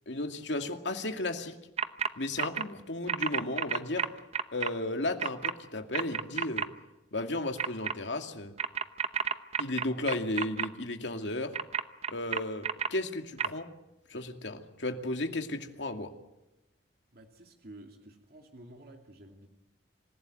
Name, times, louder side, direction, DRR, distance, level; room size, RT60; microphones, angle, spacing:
voice 1, 0.1-1.6 2.2-4.1 4.5-6.7 7.1-8.5 9.6-11.5 12.1-13.7 14.1-16.1, left 2 dB, 80° left, 5 dB, 2.3 m, -34 dB
sound 1, 1.8-2.1 2.4-2.6 3.1-4.7 5.2-5.5 5.9-6.6 7.6-7.9 8.6-10.7 11.5-12.9 13.4-13.5, right 7 dB, 35° right, 0.9 m, -30 dB
voice 2, 17.1-19.5, right 1 dB, 55° right, 3 dB, 2.6 m, -51 dB
26.5 x 16.5 x 9.4 m, 0.96 s
head